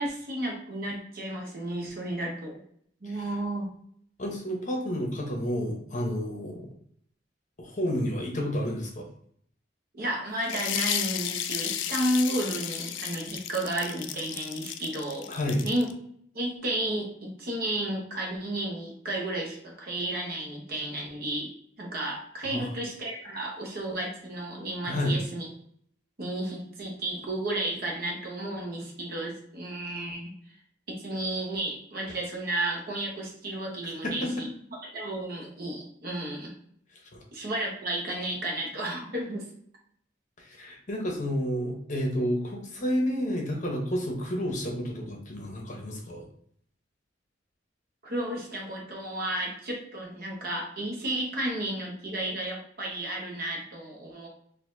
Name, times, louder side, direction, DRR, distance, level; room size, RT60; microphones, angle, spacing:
voice 1, 0.0-2.6 3.0-3.7 9.9-15.3 15.6-15.9 16.3-21.5 21.8-25.5 26.2-30.3 30.9-34.5 34.8-36.5 37.3-39.4 48.0-54.3, right 1 dB, 55° right, -1 dB, 1.0 m, -32 dB
voice 2, 4.2-6.7 7.6-9.1 15.3-15.6 22.4-22.7 24.8-25.2 34.0-34.4 37.1-37.2 40.4-46.3, equal, 40° left, 0 dB, 0.8 m, -30 dB
sound 1, 10.4-15.9, left 10 dB, 85° left, 0.3 m, -33 dB
4.0 x 2.6 x 2.6 m, 0.64 s
head